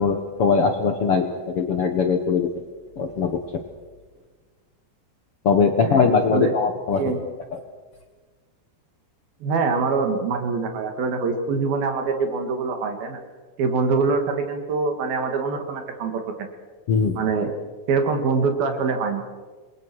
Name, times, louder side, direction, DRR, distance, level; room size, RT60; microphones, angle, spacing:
voice 1, 0.0-2.5 3.0-3.6 5.4-7.0 16.9-17.2, left 5 dB, 60° left, 6 dB, 1.6 m, -21 dB
voice 2, 5.8-6.5 7.0-7.2 9.4-13.2 13.6-16.2 17.2-17.5 17.9-19.2, right 4 dB, 75° right, 6 dB, 4.1 m, -24 dB
28.5 x 22.0 x 6.3 m, 1.4 s
omnidirectional pair, 4.3 m